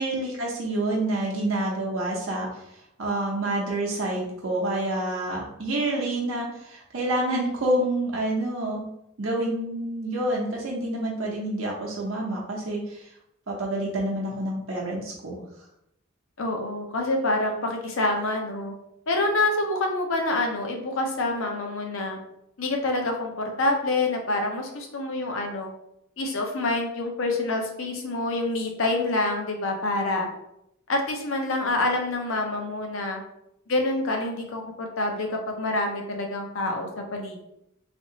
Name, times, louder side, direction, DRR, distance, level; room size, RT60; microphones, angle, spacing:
voice 1, 0.0-2.6 3.0-8.8 9.2-13.1 13.5-15.4, right 1 dB, 70° right, -3 dB, 0.7 m, -28 dB
voice 2, 16.4-18.7 19.1-22.2 22.6-25.7 26.2-30.3 30.9-33.2 33.7-37.5, left 2 dB, 65° left, 2 dB, 0.7 m, -27 dB
3.4 x 2.9 x 2.7 m, 0.80 s
head